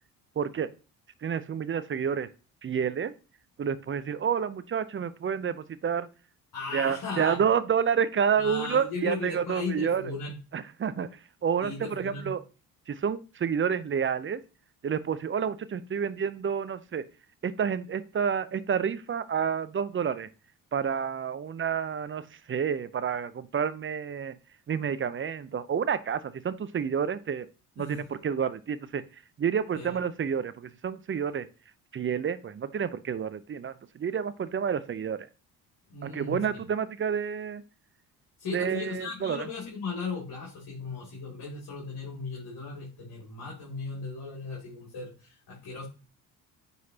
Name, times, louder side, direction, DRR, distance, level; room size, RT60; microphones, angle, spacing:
voice 1, 0.4-0.7 1.2-2.3 2.6-3.1 3.6-6.1 6.7-10.0 10.5-12.4 12.9-14.4 14.8-17.0 17.4-20.3 20.7-24.4 24.7-27.5 27.8-29.0 29.4-31.5 31.9-35.3 36.0-37.6 38.5-39.5, right 7 dB, 30° right, 15 dB, 0.6 m, -29 dB
voice 2, 6.5-7.4 8.4-10.4 11.6-12.3 27.8-28.1 29.7-30.0 35.9-36.6 38.4-45.9, left 4 dB, 65° left, -3 dB, 2.7 m, -37 dB
9.3 x 4.1 x 2.8 m, 0.33 s
supercardioid pair, 65°, 39 cm